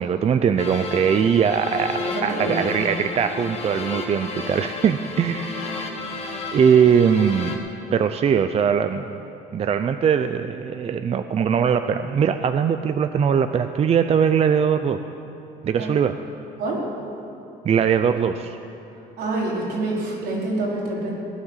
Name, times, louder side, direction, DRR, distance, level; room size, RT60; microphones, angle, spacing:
voice 1, 0.0-5.9 6.5-7.6 7.9-9.2 9.5-15.0 15.6-16.2 17.6-18.6, right 7 dB, 40° right, 9 dB, 0.5 m, -21 dB
sound 1, 0.6-7.6, left 3 dB, 40° left, 2.4 m, -32 dB
voice 2, 2.0-2.8 15.8-15.9 16.6-16.9 19.2-21.1, right 2 dB, 80° right, -5 dB, 4.9 m, -26 dB
18.5 x 9.9 x 7.3 m, 2.8 s
cardioid pair, 110°, 17 cm